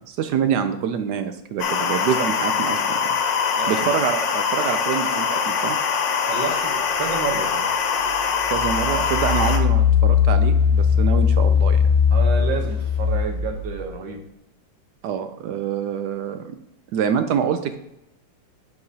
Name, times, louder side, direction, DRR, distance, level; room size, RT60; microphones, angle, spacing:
voice 1, 0.1-3.0 3.7-5.8 8.5-11.8 15.0-16.5 16.9-17.8, right 8 dB, 75° right, 8 dB, 1.1 m, -25 dB
sound 1, 1.6-9.6, left 6 dB, 80° left, 1.5 m, -23 dB
voice 2, 3.5-3.8 6.2-7.7 12.1-14.2, right 5 dB, 90° right, 4 dB, 1.7 m, -30 dB
Engine, 7.9-13.9, left 7 dB, 40° right, 3.2 m, -19 dB
11.5 x 4.8 x 2.8 m, 0.84 s
omnidirectional pair, 2.0 m